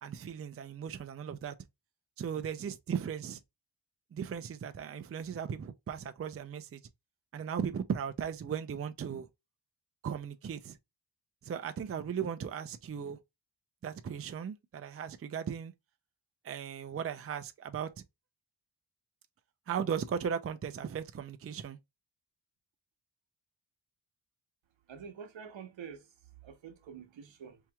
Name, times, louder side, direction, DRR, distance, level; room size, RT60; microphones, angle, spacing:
voice 1, 0.0-1.5 2.2-3.4 4.1-6.8 7.3-9.3 10.0-10.8 11.4-13.2 13.8-15.7 16.4-17.9 19.7-21.8, right 7 dB, 30° right, 0.4 m, -37 dB
voice 2, 24.9-26.1 26.4-27.6, right 7 dB, 75° right, 1.0 m, -47 dB
4.5 x 2.9 x 2.3 m
wide cardioid pair, 105°, 46 cm